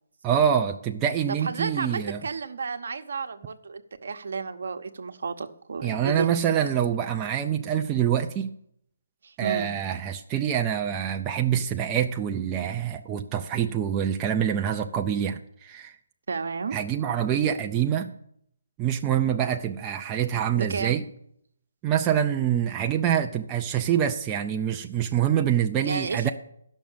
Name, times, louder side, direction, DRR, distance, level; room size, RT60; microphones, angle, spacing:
voice 1, 0.2-2.2 5.8-8.5 9.4-15.9 16.7-18.1 18.8-21.0 21.8-26.3, right 9 dB, 15° right, 3 dB, 0.4 m, -25 dB
voice 2, 1.3-6.4 9.2-9.7 16.3-16.8 20.5-21.0 25.8-26.3, right 5 dB, 65° right, 8 dB, 0.9 m, -32 dB
10.5 x 6.3 x 7.2 m, 0.71 s
hypercardioid pair, 170°, 0 cm